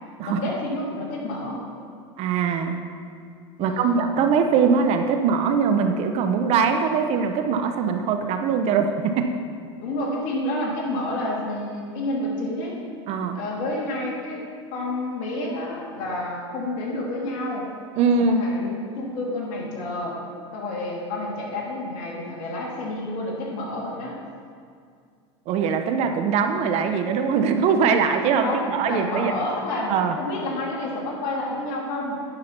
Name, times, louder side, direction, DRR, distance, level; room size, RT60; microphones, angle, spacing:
voice 1, 0.2-1.6 3.6-4.2 9.8-12.8 13.3-17.7 18.2-20.2 20.5-24.2 28.4-32.2, left 1 dB, 50° left, -3 dB, 2.6 m, -29 dB
voice 2, 2.2-2.8 3.6-9.3 13.1-13.4 18.0-18.4 25.5-29.3 29.9-30.1, right 6 dB, 45° right, 6 dB, 0.7 m, -22 dB
9.6 x 5.8 x 5.9 m, 2.2 s
supercardioid pair, 120°, 15 cm